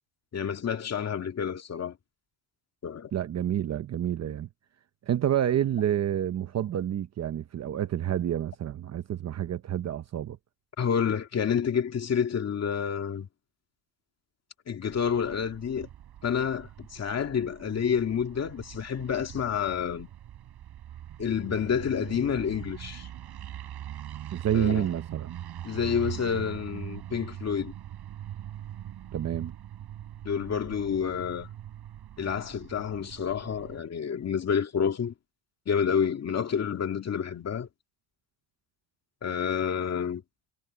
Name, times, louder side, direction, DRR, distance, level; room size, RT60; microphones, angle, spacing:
voice 1, 0.3-2.0 2.8-3.1 10.8-13.3 14.7-15.9 16.2-20.1 21.2-23.1 24.5-24.9 25.6-27.7 30.2-31.5 32.2-35.1 35.7-37.7 39.2-40.2, left 7 dB, 35° left, 2.1 m, -29 dB
voice 2, 3.1-4.5 5.1-10.4 24.3-25.4 29.1-29.5, right 10 dB, 35° right, 0.7 m, -28 dB
sound 1, 14.8-33.8, right 11 dB, 50° right, 6.0 m, -42 dB
cardioid pair, 150°, 47 cm